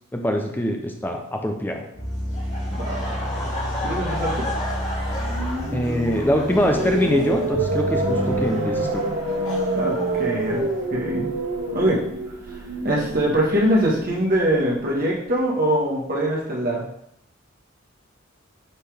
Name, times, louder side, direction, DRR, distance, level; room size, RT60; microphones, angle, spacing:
voice 1, 0.1-1.9 5.7-9.0, equal, 10° left, 2 dB, 0.7 m, -23 dB
sound 1, 1.9-8.5, equal, 50° left, 1.6 m, -30 dB
Laughter, 2.3-10.8, left 1 dB, 30° left, 2.3 m, -34 dB
voice 2, 2.7-3.4 3.8-4.5 9.7-10.6 10.9-11.3 11.7-12.0 12.5-12.6 12.8-16.9, right 1 dB, 45° right, -3 dB, 1.5 m, -23 dB
sound 2, 4.9-15.1, right 2 dB, 90° right, 2.0 m, -27 dB
9.9 x 4.1 x 3.5 m, 0.74 s
head